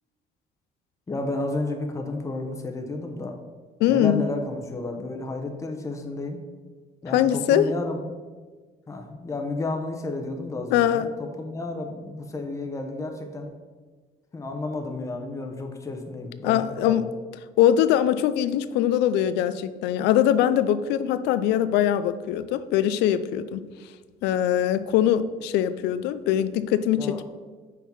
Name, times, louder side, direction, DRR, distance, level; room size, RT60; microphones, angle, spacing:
voice 1, 1.1-3.4 3.9-6.4 7.0-8.2 8.9-13.5 14.3-17.1 27.0-27.2, left 2 dB, 20° left, 3 dB, 0.8 m, -32 dB
voice 2, 3.8-4.2 7.1-7.7 10.7-11.1 16.4-17.0 17.6-23.6 24.2-27.2, left 11 dB, 85° left, 14 dB, 0.4 m, -22 dB
5.8 x 4.5 x 5.8 m, 1.4 s
cardioid pair, 110°, 17 cm